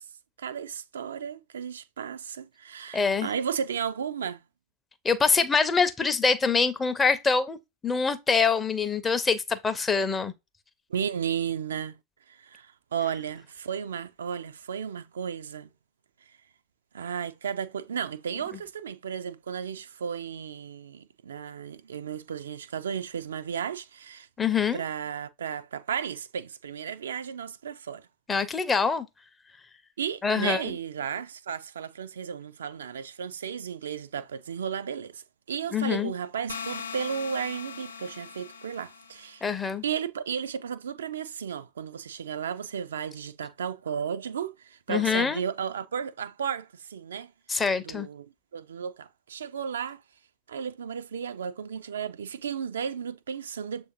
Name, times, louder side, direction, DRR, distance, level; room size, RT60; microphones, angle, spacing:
voice 1, 0.4-4.4 10.9-12.0 12.3-15.7 16.9-24.3 24.7-28.1 30.0-39.4 39.8-47.3 47.8-48.3 48.5-50.0 50.5-53.9, right 7 dB, 65° right, 0.3 m, -34 dB
voice 2, 2.9-3.3 5.0-7.6 7.8-10.3 24.4-24.8 28.3-29.1 30.2-30.7 35.7-36.1 39.4-39.8 44.9-45.4 47.5-48.1, left 5 dB, 15° left, 0.5 m, -25 dB
sound 1, 36.5-39.4, left 6 dB, 75° left, 0.4 m, -40 dB
6.7 x 2.6 x 2.9 m
figure-of-eight pair, 90°, 0 cm